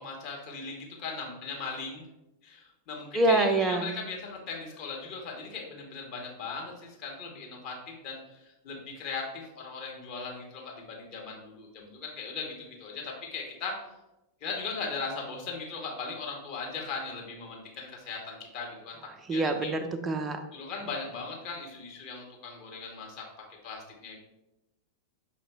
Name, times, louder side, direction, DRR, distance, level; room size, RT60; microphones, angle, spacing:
voice 1, 0.0-2.0 2.4-8.2 8.6-13.7 14.4-19.0 19.3-19.7 20.5-23.3 23.6-24.2, left 4 dB, 40° left, -1 dB, 1.2 m, -38 dB
voice 2, 3.1-3.9 19.3-20.4, right 2 dB, 20° right, 7 dB, 0.5 m, -26 dB
6.0 x 2.6 x 3.4 m, 0.94 s
figure-of-eight pair, 90°, 0 cm